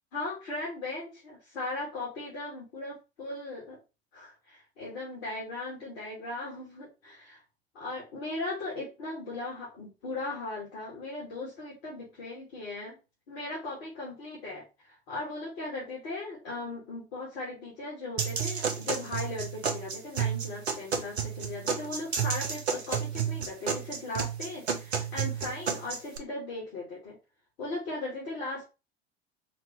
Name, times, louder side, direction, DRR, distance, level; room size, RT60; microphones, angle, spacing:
voice 1, 0.1-3.8 4.1-7.4 7.7-13.0 13.3-27.2 27.6-28.7, left 2 dB, 65° left, -5 dB, 2.5 m, -38 dB
sound 1, 18.2-26.2, right 7 dB, 80° right, 1.1 m, -31 dB
5.7 x 2.8 x 3.3 m, 0.28 s
figure-of-eight pair, 80°, 32 cm